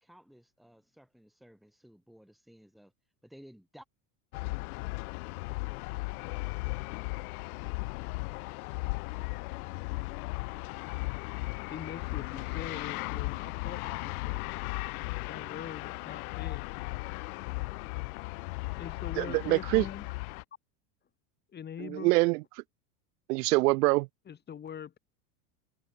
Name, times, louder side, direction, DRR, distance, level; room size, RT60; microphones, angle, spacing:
voice 1, 0.0-2.9 3.2-3.9, equal, ahead, 3.6 m, -56 dB
sound 1, 4.3-20.4, left 25 dB, 65° left, 1.0 m, -36 dB
voice 2, 11.7-14.6 15.3-16.7 18.8-20.1 21.5-22.1 24.3-25.0, left 8 dB, 20° left, 1.8 m, -43 dB
voice 3, 19.2-19.8 21.8-22.4 23.3-24.1, right 23 dB, 75° right, 0.6 m, -25 dB
supercardioid pair, 135°, 47 cm